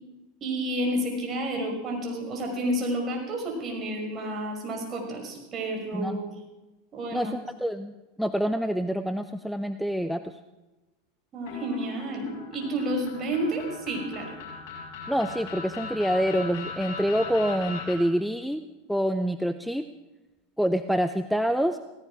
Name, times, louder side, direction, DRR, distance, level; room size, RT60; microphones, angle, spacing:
voice 1, 0.4-6.3 6.9-7.3 11.3-14.4, right 1 dB, 35° right, 1 dB, 5.6 m, -30 dB
voice 2, 7.1-10.3 15.1-18.6 18.9-19.9 20.6-21.8, equal, ahead, 10 dB, 0.6 m, -26 dB
sound 1, 11.5-18.0, left 5 dB, 65° left, 7.0 m, -39 dB
17.0 x 16.0 x 4.9 m, 1.1 s
hypercardioid pair, 95°, 0 cm